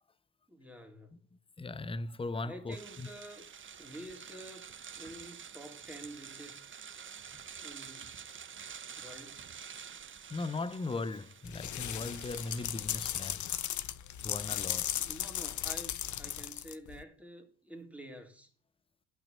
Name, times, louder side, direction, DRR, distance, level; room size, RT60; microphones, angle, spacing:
voice 1, 0.5-1.2 2.4-3.5 3.8-4.7 5.0-6.6 7.6-8.3 9.0-9.6 14.9-18.5, right 1 dB, 5° right, 3.0 m, -49 dB
voice 2, 1.6-3.1 10.3-13.4 14.2-14.9, left 3 dB, 15° left, 0.6 m, -38 dB
sound 1, 2.7-12.7, right 7 dB, 25° right, 0.8 m, -48 dB
sound 2, 11.5-17.0, left 11 dB, 40° left, 0.8 m, -36 dB
11.5 x 5.9 x 6.6 m
hypercardioid pair, 55°, 44 cm